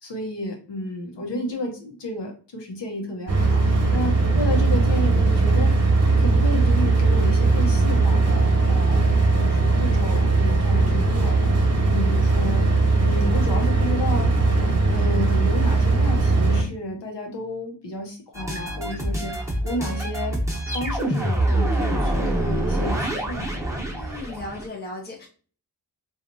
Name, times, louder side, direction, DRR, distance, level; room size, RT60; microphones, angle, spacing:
voice 1, 0.0-9.1 9.4-12.7 13.0-14.3 14.9-23.5, left 1 dB, 90° left, 1 dB, 0.8 m, -32 dB
sound 1, 3.3-16.6, right 3 dB, 40° right, 0.9 m, -19 dB
sound 2, 18.3-24.7, right 1 dB, 5° right, 0.8 m, -26 dB
voice 2, 24.0-25.3, left 2 dB, 25° left, -1 dB, 0.6 m, -36 dB
2.9 x 2.4 x 2.6 m, 0.40 s
wide cardioid pair, 90°, 41 cm